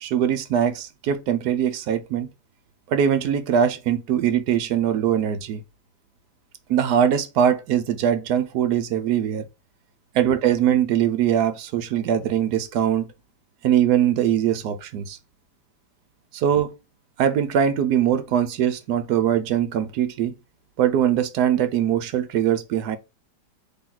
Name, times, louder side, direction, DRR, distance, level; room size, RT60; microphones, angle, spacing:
voice 1, 0.0-2.3 2.9-5.6 6.7-9.5 10.1-13.1 13.6-15.2 16.3-16.7 17.2-20.3 20.8-23.0, right 9 dB, 75° right, 1.2 m, -22 dB
3.8 x 3.1 x 4.4 m
omnidirectional pair, 1.8 m